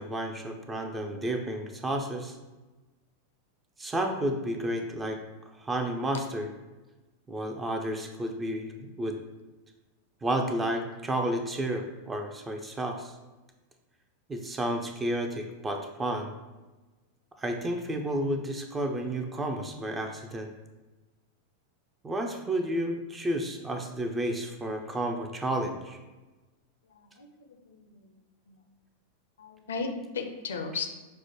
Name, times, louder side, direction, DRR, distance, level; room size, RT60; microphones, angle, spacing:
voice 1, 0.0-2.3 3.8-5.2 5.6-6.5 7.3-9.2 10.2-13.1 14.3-16.3 17.4-20.5 22.0-26.0, right 1 dB, 15° right, 5 dB, 0.4 m, -31 dB
voice 2, 26.9-28.1 28.5-28.6 29.4-30.9, left 4 dB, 65° left, 6 dB, 0.4 m, -36 dB
5.9 x 2.1 x 3.0 m, 1.2 s
figure-of-eight pair, 90°, 0 cm